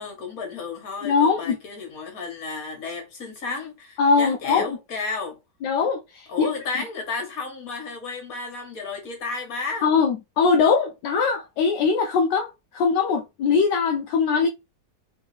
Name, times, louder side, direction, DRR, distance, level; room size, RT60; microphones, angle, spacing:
voice 1, 0.0-5.4 6.3-9.9, left 4 dB, 55° left, 2.0 m, -32 dB
voice 2, 1.0-1.6 4.0-4.8 5.6-6.5 9.8-14.5, left 5 dB, 80° left, 1.3 m, -21 dB
3.5 x 3.5 x 3.4 m
omnidirectional pair, 1.9 m